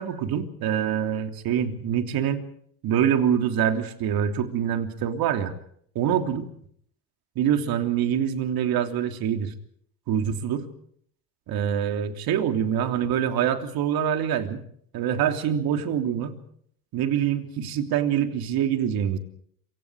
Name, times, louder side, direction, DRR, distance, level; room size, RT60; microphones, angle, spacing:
voice 1, 0.0-2.4 2.8-5.5 5.9-6.4 7.3-9.5 10.1-10.7 11.5-14.6 14.9-16.4 16.9-19.2, right 9 dB, 50° right, 6 dB, 3.3 m, -25 dB
26.5 x 24.5 x 5.0 m, 0.64 s
supercardioid pair, 120°, 46 cm